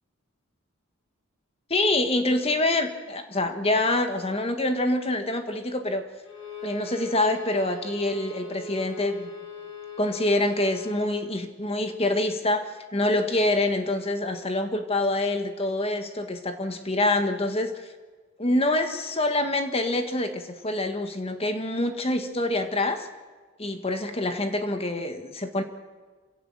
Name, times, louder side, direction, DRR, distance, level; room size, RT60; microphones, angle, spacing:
voice 1, 1.7-6.1 6.6-9.3 10.0-17.7 18.4-23.1 23.6-25.6, left 2 dB, 25° left, 7 dB, 1.6 m, -26 dB
Bowed string instrument, 6.2-11.3, left 1 dB, 65° left, 6.9 m, -40 dB
27.0 x 16.5 x 7.4 m, 1.4 s
head